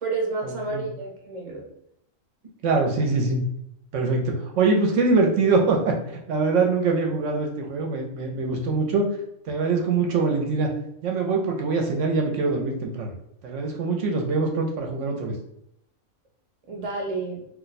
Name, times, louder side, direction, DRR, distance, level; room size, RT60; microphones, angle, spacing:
voice 1, 0.0-1.7 16.7-17.5, right 3 dB, 40° right, 0 dB, 0.5 m, -30 dB
voice 2, 2.6-3.4 3.9-9.1 9.5-10.7 11.0-13.1 13.4-15.3, right 3 dB, 70° right, 2 dB, 0.8 m, -23 dB
2.5 x 2.1 x 3.9 m, 0.76 s
omnidirectional pair, 1.4 m